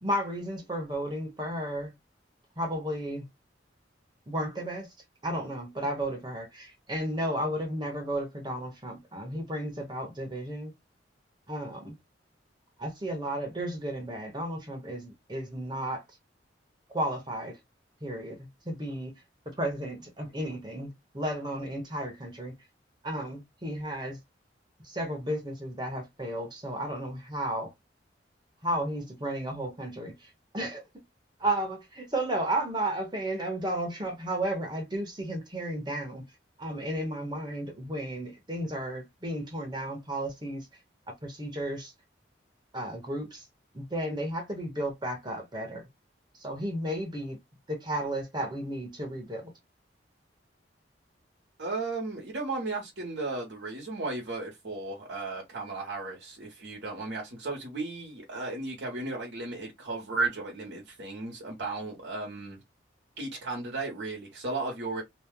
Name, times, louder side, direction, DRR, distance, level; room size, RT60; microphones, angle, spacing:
voice 1, 0.0-1.9 2.6-3.2 4.3-4.9 5.2-10.7 11.5-12.0 12.8-16.0 16.9-17.6 18.0-19.1 19.6-22.6 23.0-24.2 24.8-27.7 28.6-30.8 31.4-36.2 36.6-40.7 41.2-41.9 42.7-43.4 43.7-45.9 46.4-47.4 47.7-49.5, right 1 dB, 25° right, 1.0 m, -33 dB
voice 2, 51.6-62.6 63.2-65.0, right 3 dB, 70° right, 1.1 m, -35 dB
2.8 x 2.2 x 3.5 m
head